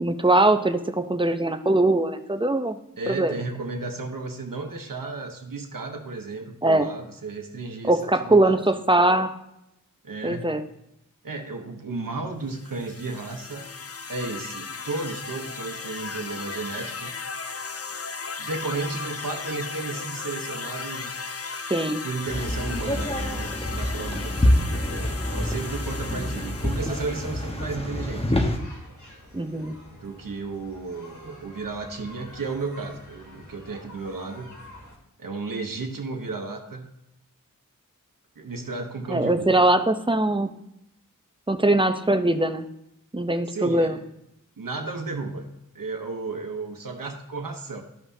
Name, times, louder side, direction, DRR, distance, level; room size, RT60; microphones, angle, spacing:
voice 1, 0.0-2.8 3.1-3.3 6.6-6.9 7.8-9.3 10.2-10.6 21.7-22.0 29.3-29.8 39.1-40.6 41.5-42.7 43.1-44.0, right 2 dB, 15° right, 8 dB, 0.6 m, -21 dB
voice 2, 3.0-8.6 10.0-10.6 11.2-13.7 14.1-17.1 18.4-21.2 22.0-28.5 29.9-34.6 35.2-36.9 38.4-39.6 43.5-44.0 44.6-45.4 45.7-47.8, right 3 dB, 80° right, 3 dB, 1.0 m, -33 dB
sound 1, 12.5-27.6, left 5 dB, 45° left, 0.5 m, -36 dB
sound 2, 22.3-28.6, left 1 dB, 15° left, 1.0 m, -26 dB
sound 3, 27.4-35.0, left 1 dB, 60° left, 2.1 m, -47 dB
12.5 x 5.5 x 2.7 m, 0.82 s
wide cardioid pair, 45°, 33 cm